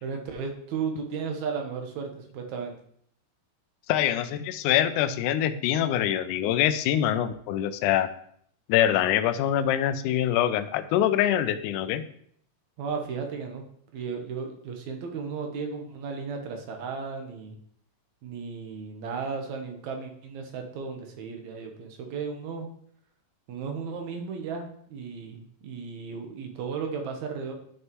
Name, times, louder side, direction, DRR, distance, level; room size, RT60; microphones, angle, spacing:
voice 1, 0.0-2.7 12.8-13.7 13.9-17.6 18.2-22.7 23.5-27.5, right 5 dB, 65° right, 4 dB, 2.2 m, -35 dB
voice 2, 3.9-8.1 8.7-12.1, left 11 dB, 80° left, 10 dB, 1.9 m, -24 dB
11.0 x 6.4 x 3.0 m, 0.65 s
omnidirectional pair, 3.9 m